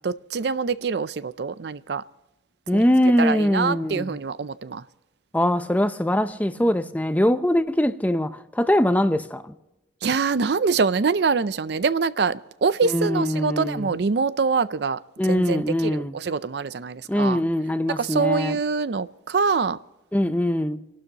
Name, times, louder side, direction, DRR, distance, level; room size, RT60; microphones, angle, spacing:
voice 1, 0.0-2.0 3.2-4.8 10.0-17.4 18.0-19.8, right 5 dB, 60° right, 0.5 m, -24 dB
voice 2, 2.7-4.2 5.3-9.5 12.8-14.0 15.2-16.1 17.1-18.6 20.1-20.8, left 1 dB, 10° left, 0.6 m, -22 dB
28.5 x 12.0 x 2.9 m
head